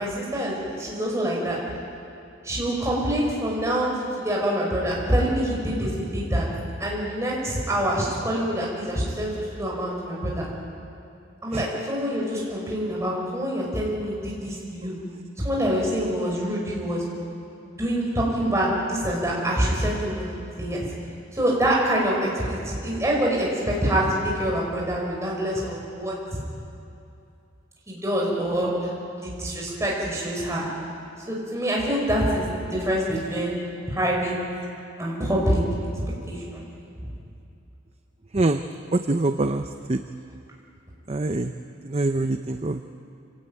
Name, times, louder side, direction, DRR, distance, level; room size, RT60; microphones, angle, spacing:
voice 1, 0.0-1.6 2.4-6.5 6.8-10.5 11.4-15.0 15.4-17.0 17.6-20.3 20.6-20.8 21.3-26.4 27.9-30.7 31.3-33.6 33.9-34.4 35.0-35.6 36.3-36.7 37.0-37.1, right 1 dB, 15° right, -3 dB, 5.7 m, -26 dB
voice 2, 38.9-39.6 39.9-40.0 41.1-41.5 41.9-42.8, right 2 dB, 30° right, 8 dB, 0.6 m, -24 dB
26.0 x 16.5 x 9.0 m, 2.6 s
head